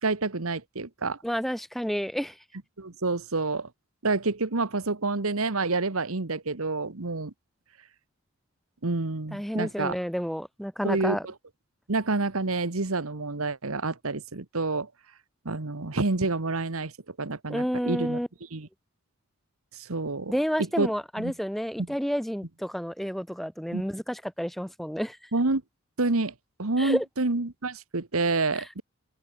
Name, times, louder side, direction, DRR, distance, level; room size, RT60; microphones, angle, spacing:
voice 1, 0.0-1.2 2.8-3.7 4.0-7.3 8.8-10.0 10.8-11.3 11.9-14.9 15.4-16.9 17.2-18.2 18.5-18.7 19.7-20.4 20.8-20.9 21.2-21.3 23.7-23.8 25.3-25.6 26.0-26.3 26.6-28.8, right 3 dB, 80° right, 1.4 m, -28 dB
voice 2, 1.2-2.4 9.3-11.3 17.5-18.3 20.3-25.3 26.8-27.0 28.5-28.7, equal, ahead, 0.9 m, -30 dB
head